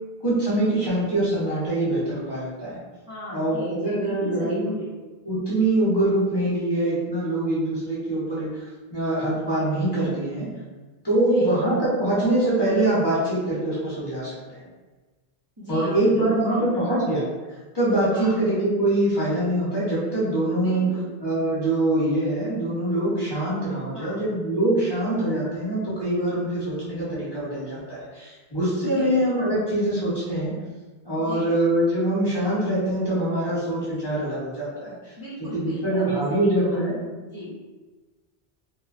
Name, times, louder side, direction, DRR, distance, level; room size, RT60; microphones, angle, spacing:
voice 1, 0.2-2.8 3.3-4.7 5.3-8.5 8.9-10.5 11.0-14.6 15.7-17.2 17.7-20.9 21.2-30.5 31.0-34.9 35.5-36.9, right 1 dB, 25° left, -9 dB, 0.8 m, -24 dB
voice 2, 3.1-4.9 11.1-11.6 15.6-17.0 18.1-18.4 20.6-21.1 23.9-24.3 28.8-29.2 31.2-31.6 35.2-37.6, left 1 dB, 30° right, -10 dB, 0.5 m, -38 dB
3.0 x 2.1 x 2.4 m, 1.3 s
omnidirectional pair, 1.0 m